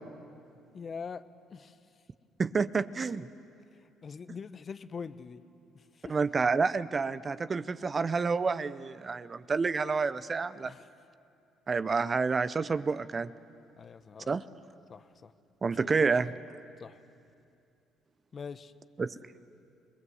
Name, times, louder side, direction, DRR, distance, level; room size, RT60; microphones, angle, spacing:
voice 1, 0.7-2.0 4.0-5.4 5.7-6.1 10.6-10.9 13.8-14.4 14.9-15.3 15.6-16.4 16.8-17.0 18.3-18.7, left 6 dB, 45° left, 12 dB, 0.9 m, -44 dB
voice 2, 2.4-3.3 6.1-10.7 11.7-13.3 14.3-14.4 15.6-16.3 19.0-19.1, right 4 dB, 35° right, 14 dB, 0.7 m, -29 dB
26.5 x 20.0 x 8.0 m, 2.5 s
supercardioid pair, 70°, 0 cm